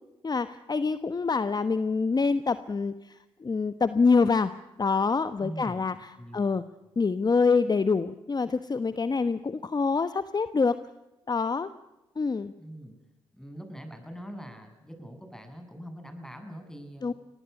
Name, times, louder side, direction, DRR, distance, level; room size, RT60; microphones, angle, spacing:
voice 1, 0.2-2.9 3.4-4.5 4.8-5.9 6.3-6.6 7.0-10.8 11.3-11.7 12.2-12.5 17.0-17.1, left 4 dB, 35° left, 12 dB, 1.1 m, -25 dB
voice 2, 5.4-5.9 6.2-6.6 12.6-13.0 13.3-17.2, equal, 5° left, 7 dB, 7.8 m, -43 dB
24.0 x 19.0 x 8.2 m, 0.98 s
supercardioid pair, 50°, 12 cm